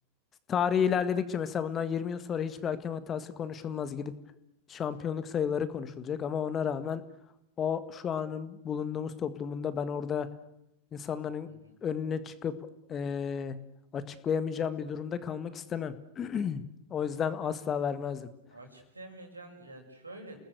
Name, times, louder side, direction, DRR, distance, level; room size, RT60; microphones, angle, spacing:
voice 1, 0.5-4.1 4.7-7.0 7.6-10.3 10.9-11.5 11.8-12.5 12.9-13.6 13.9-16.6 16.9-18.3, left 7 dB, 25° left, 13 dB, 1.8 m, -32 dB
voice 2, 11.5-11.8 18.5-20.3, right 2 dB, 80° right, 4 dB, 6.2 m, -48 dB
29.0 x 19.0 x 8.2 m, 0.80 s
figure-of-eight pair, 90°, 0 cm